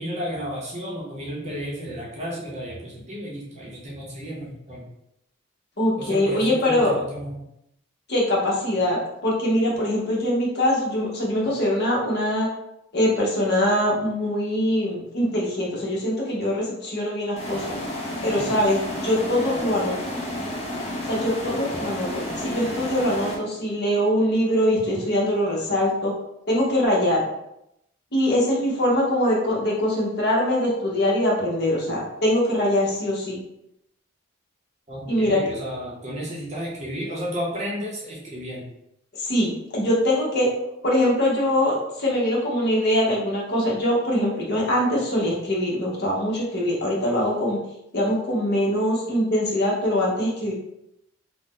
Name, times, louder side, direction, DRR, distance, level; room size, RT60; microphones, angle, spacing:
voice 1, 0.0-4.9 6.0-7.4 18.3-18.5 34.9-38.7, equal, 30° right, -4 dB, 0.6 m, -32 dB
voice 2, 5.8-7.0 8.1-12.5 12.9-17.8 18.2-20.0 21.1-26.1 26.5-27.2 28.1-33.4 35.1-35.4 39.2-40.5 40.8-47.6 47.9-50.5, left 1 dB, 50° left, -4 dB, 0.9 m, -23 dB
sound 1, 17.4-23.4, left 1 dB, 30° left, 0.4 m, -31 dB
2.6 x 2.0 x 3.6 m, 0.82 s
head